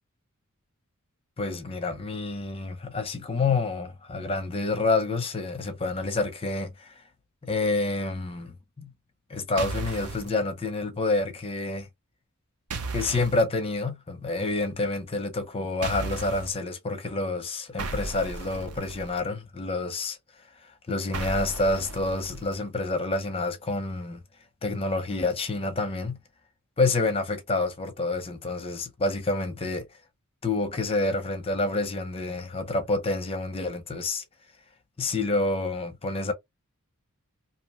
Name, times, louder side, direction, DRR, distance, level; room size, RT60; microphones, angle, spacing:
voice 1, 1.4-7.0 7.4-8.9 9.3-11.9 12.9-20.2 20.9-24.2 24.6-26.2 26.8-29.9 30.4-34.2 35.0-36.3, left 3 dB, 25° left, 0.6 m, -28 dB
sound 1, 9.6-10.3 12.7-13.4 15.8-16.5 17.8-19.2 21.1-22.6, right 3 dB, 85° right, 0.7 m, -35 dB
2.7 x 2.1 x 2.9 m
head